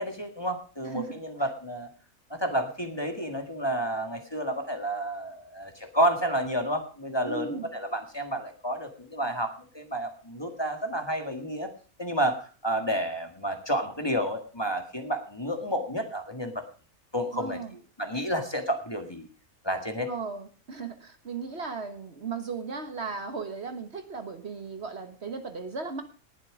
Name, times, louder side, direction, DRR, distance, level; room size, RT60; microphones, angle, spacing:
voice 1, 0.0-1.9 2.3-11.7 12.0-16.6 17.1-17.6 18.0-19.3 19.6-20.1, right 1 dB, 20° left, 5 dB, 1.8 m, -30 dB
voice 2, 0.8-1.2 7.2-7.7 17.3-17.7 20.1-26.0, right 4 dB, 50° right, 8 dB, 1.5 m, -36 dB
19.0 x 7.6 x 4.9 m, 0.38 s
omnidirectional pair, 1.4 m